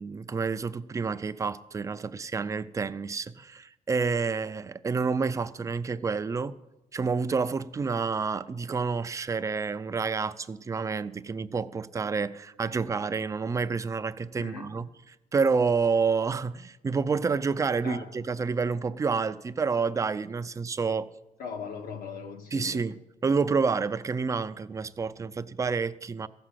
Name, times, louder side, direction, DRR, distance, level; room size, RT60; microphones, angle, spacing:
voice 1, 0.0-6.6 6.9-14.9 15.3-21.1 22.5-26.3, right 5 dB, 20° right, 0.4 m, -29 dB
voice 2, 14.4-14.7 17.8-18.1 21.4-22.8, left 5 dB, 75° left, 1.5 m, -39 dB
14.5 x 6.1 x 7.3 m
cardioid pair, 150°, 15 cm